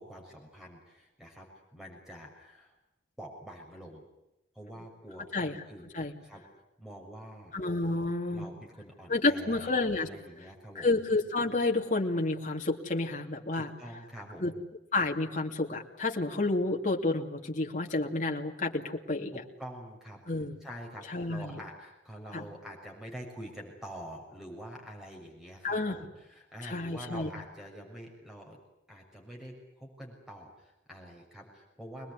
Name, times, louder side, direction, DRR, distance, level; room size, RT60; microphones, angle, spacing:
voice 1, 0.0-1.5 1.7-2.7 3.2-4.0 4.5-5.8 6.2-6.4 6.8-7.5 8.3-9.7 10.0-10.9 13.5-14.5 19.3-20.2 20.6-28.6 28.9-32.1, equal, 5° right, 0 dB, 6.4 m, -46 dB
voice 2, 7.5-8.5 9.1-10.1 10.7-13.7 14.4-14.5 14.9-19.3 20.3-20.6 21.1-21.5 22.3-22.5 25.6-26.0 26.6-27.3, left 2 dB, 45° left, 1 dB, 2.7 m, -30 dB
24.5 x 20.5 x 9.9 m, 0.90 s
head